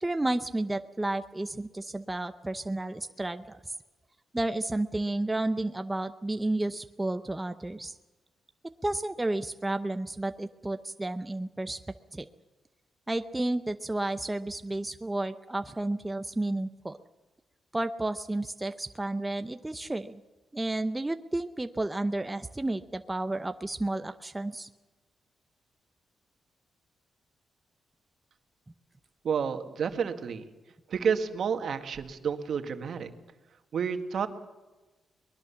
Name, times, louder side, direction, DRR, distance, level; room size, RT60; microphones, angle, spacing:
voice 1, 0.0-3.6 4.3-7.9 8.8-11.8 12.1-12.3 13.1-17.0 17.7-20.2 20.5-24.7, right 2 dB, 15° right, 9 dB, 0.7 m, -31 dB
voice 2, 29.2-30.4 30.9-33.1 33.7-34.3, right 6 dB, 60° right, 7 dB, 1.9 m, -30 dB
23.0 x 21.0 x 7.2 m, 1.2 s
cardioid pair, 115°, 0 cm